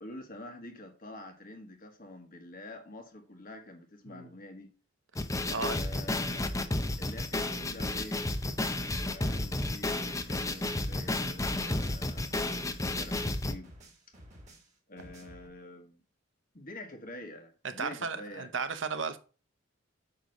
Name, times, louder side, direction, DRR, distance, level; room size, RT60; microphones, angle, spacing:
voice 1, 0.0-4.7 5.4-6.6 7.0-8.3 9.0-13.7 14.9-16.0 16.5-18.6, left 1 dB, 45° left, 1.4 m, -47 dB
sound 1, 5.2-13.5, left 2 dB, 15° left, 0.6 m, -32 dB
sound 2, 6.1-13.3, right 1 dB, 80° left, 1.8 m, -52 dB
sound 3, 10.1-13.4 13.6-15.5, equal, 35° right, 2.4 m, -54 dB
voice 2, 17.8-19.2, right 5 dB, 65° right, 0.9 m, -34 dB
8.9 x 3.1 x 6.5 m
head